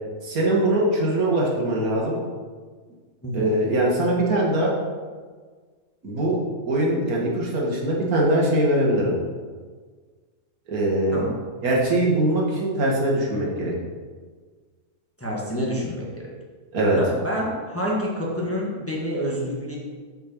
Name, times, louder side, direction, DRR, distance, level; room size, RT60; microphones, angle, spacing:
voice 1, 0.2-2.2 3.3-4.7 6.0-6.4 6.7-9.1 10.7-11.2 11.6-13.7 16.7-17.0, right 1 dB, 80° right, -3 dB, 2.1 m, -22 dB
voice 2, 15.2-16.1 17.0-19.8, equal, 10° left, -4 dB, 1.2 m, -28 dB
6.6 x 5.2 x 6.2 m, 1.5 s
omnidirectional pair, 1.5 m